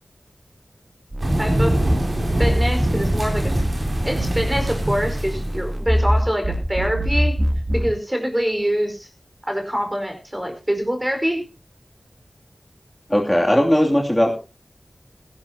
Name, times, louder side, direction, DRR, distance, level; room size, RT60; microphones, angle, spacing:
sound 1, 1.1-7.9, equal, 40° right, 2.9 m, -24 dB
sound 2, 1.2-5.7, right 1 dB, 70° right, 6.7 m, -23 dB
voice 1, 1.4-1.8 2.4-3.5 4.0-7.4 7.7-9.1 9.5-11.4, equal, 15° right, 4 dB, 4.9 m, -24 dB
voice 2, 13.1-14.4, equal, 10° left, -1 dB, 2.8 m, -18 dB
16.5 x 16.5 x 2.9 m, 0.32 s
wide cardioid pair, 55°, 0 cm